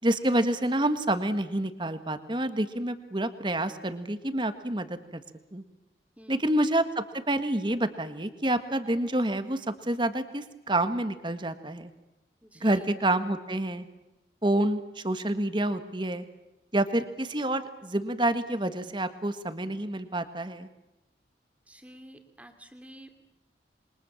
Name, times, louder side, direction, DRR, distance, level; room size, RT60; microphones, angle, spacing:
voice 1, 0.0-5.2 5.5-5.6 6.3-11.9 12.6-13.8 14.4-16.2 16.7-20.7, right 1 dB, 25° right, 10 dB, 1.7 m, -28 dB
voice 2, 6.2-6.5 12.4-12.9 21.7-23.1, equal, 10° right, 6 dB, 2.8 m, -50 dB
28.0 x 23.0 x 7.2 m, 0.97 s
head